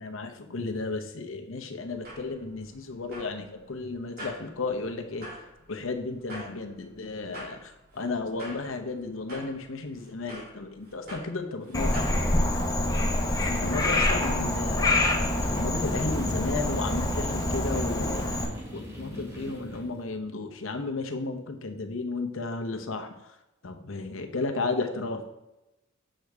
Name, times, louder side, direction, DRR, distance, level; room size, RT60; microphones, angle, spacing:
voice 1, 0.0-5.3 5.7-12.2 13.4-18.3 18.7-23.4 23.6-25.3, left 3 dB, 75° left, 5 dB, 0.9 m, -33 dB
sound 1, 1.8-12.2, equal, 50° right, 2.8 m, -46 dB
Frog, 11.7-18.5, left 1 dB, 20° left, 1.0 m, -26 dB
sound 2, 15.2-20.3, equal, 15° right, 2.5 m, -41 dB
7.6 x 6.6 x 3.5 m, 0.97 s
head